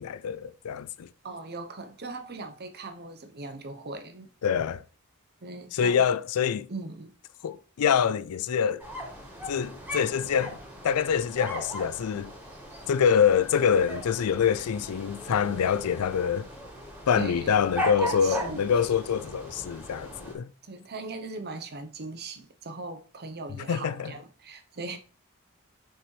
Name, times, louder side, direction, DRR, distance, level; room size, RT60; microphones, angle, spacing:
voice 1, 0.0-1.1 4.4-4.8 5.7-6.7 7.4-8.8 9.5-10.6 10.8-12.3 12.9-16.5 17.1-20.5 23.6-24.1, left 7 dB, 80° left, 0.4 m, -25 dB
voice 2, 1.2-4.3 5.4-6.0 6.7-7.1 17.1-17.6 17.9-18.8 20.6-25.0, right 3 dB, 45° right, 0.8 m, -39 dB
sound 1, 8.8-20.3, equal, 5° right, 2.5 m, -38 dB
5.9 x 5.3 x 3.2 m
head